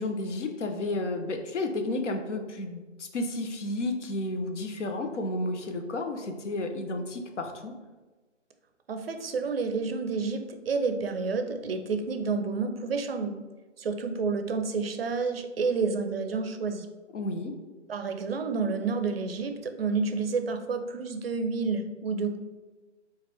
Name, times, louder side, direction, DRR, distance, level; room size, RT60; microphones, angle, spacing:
voice 1, 0.0-7.7 17.1-17.5, left 2 dB, 80° left, 5 dB, 0.7 m, -32 dB
voice 2, 8.9-13.3 13.8-16.9 17.9-22.4, right 4 dB, 55° right, 7 dB, 0.5 m, -29 dB
5.2 x 2.4 x 3.3 m, 1.3 s
hypercardioid pair, 175°, 36 cm